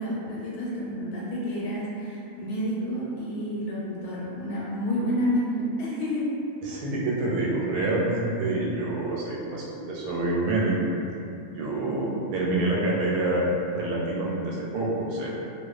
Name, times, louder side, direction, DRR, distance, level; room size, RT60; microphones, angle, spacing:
voice 1, 0.0-6.3, equal, 80° left, -6 dB, 1.1 m, -29 dB
voice 2, 6.6-10.9 11.6-15.3, right 2 dB, 90° right, -5 dB, 1.1 m, -27 dB
2.4 x 2.3 x 2.4 m, 2.6 s
omnidirectional pair, 1.6 m